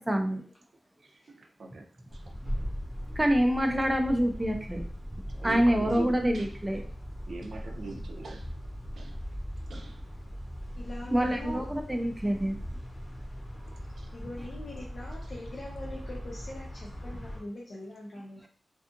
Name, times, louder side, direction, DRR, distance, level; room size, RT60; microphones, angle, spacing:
voice 1, 0.1-0.4 3.1-4.8 5.4-6.8 11.1-12.6 14.4-14.5, equal, 10° right, 3 dB, 0.4 m, -26 dB
voice 2, 1.0-1.9 2.1-2.2 5.3-6.8 7.3-8.5 9.0-9.2 9.7-10.0 11.0-11.1 13.6-14.1 15.2-15.4, right 3 dB, 70° right, 2 dB, 0.5 m, -42 dB
sound 1, 2.1-17.4, equal, 20° left, 0.8 m, -39 dB
voice 3, 10.8-11.6 14.1-18.5, left 1 dB, 50° left, -4 dB, 0.5 m, -42 dB
2.6 x 2.4 x 2.5 m, 0.44 s
wide cardioid pair, 110°, 0 cm